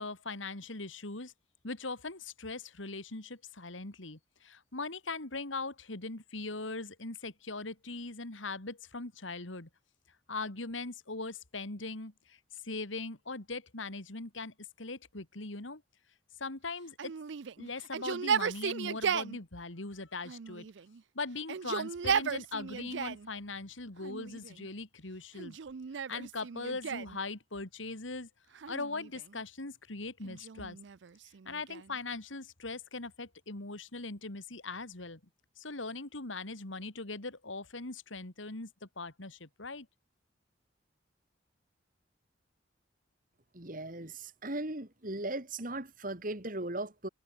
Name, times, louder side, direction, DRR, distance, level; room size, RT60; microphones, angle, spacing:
voice 1, 0.0-1.3 1.6-9.7 10.3-15.8 16.4-17.1 17.6-20.7 21.1-25.6 26.1-28.3 28.7-30.8 31.4-35.2 35.6-39.9, left 3 dB, 85° left, 2.8 m, -40 dB
Yell, 17.0-19.4 20.3-21.0 21.4-23.3 24.0-24.7 25.4-27.2 28.5-29.4 30.2-32.0, right 7 dB, 70° right, 0.5 m, -35 dB
voice 2, 43.5-47.1, right 2 dB, 45° right, 2.5 m, -38 dB
head